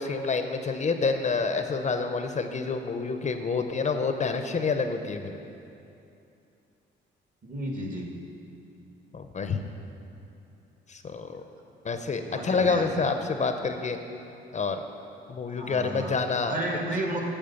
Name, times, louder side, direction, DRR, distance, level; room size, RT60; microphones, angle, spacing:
voice 1, 0.0-5.4 9.1-9.6 10.9-11.4 11.8-14.0 14.5-14.8 15.3-16.6, left 4 dB, 35° left, 7 dB, 0.7 m, -28 dB
voice 2, 7.4-8.1 12.2-13.1 15.5-16.1 16.5-17.2, right 1 dB, 45° right, 1 dB, 1.8 m, -32 dB
8.9 x 7.2 x 7.0 m, 2.7 s
cardioid pair, 90°, 20 cm